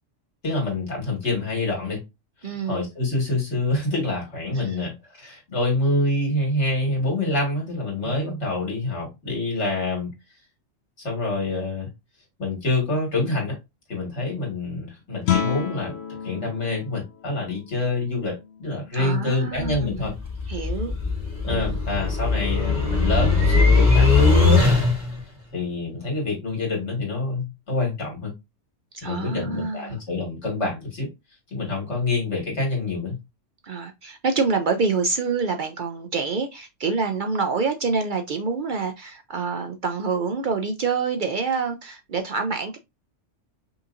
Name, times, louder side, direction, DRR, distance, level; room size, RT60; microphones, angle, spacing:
voice 1, 0.4-2.0 2.4-10.1 11.0-11.9 12.4-13.6 13.9-16.0 16.2-20.1 20.5-20.6 21.4-24.9 25.5-28.3 29.0-31.1 31.5-33.2, left 2 dB, 65° left, 2.2 m, -26 dB
voice 2, 2.4-2.9 4.5-4.8 18.9-20.1 20.5-20.9 21.5-21.7 28.9-30.0 33.6-42.8, right 4 dB, 60° right, 0.5 m, -26 dB
Guitar, 15.2-20.8, left 9 dB, 90° left, 1.0 m, -32 dB
sound 1, 19.5-25.2, left 3 dB, 30° left, 1.4 m, -20 dB
5.4 x 2.8 x 2.5 m
omnidirectional pair, 1.3 m